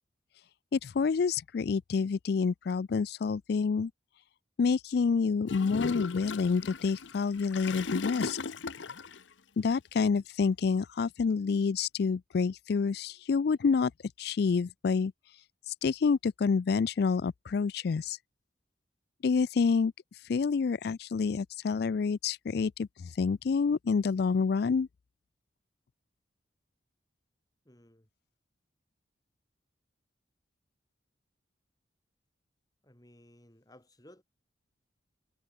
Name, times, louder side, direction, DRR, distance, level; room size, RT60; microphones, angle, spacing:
voice 1, 0.7-3.9 4.6-8.4 9.6-13.9 14.2-15.1 15.8-18.2 19.2-19.9 20.3-24.9, left 5 dB, 55° left, 0.4 m, -28 dB
Gurgling / Toilet flush, 5.5-9.2, left 4 dB, 85° left, 0.9 m, -37 dB
voice 2, 27.6-28.1 32.8-34.2, left 1 dB, 20° left, 2.8 m, -57 dB
head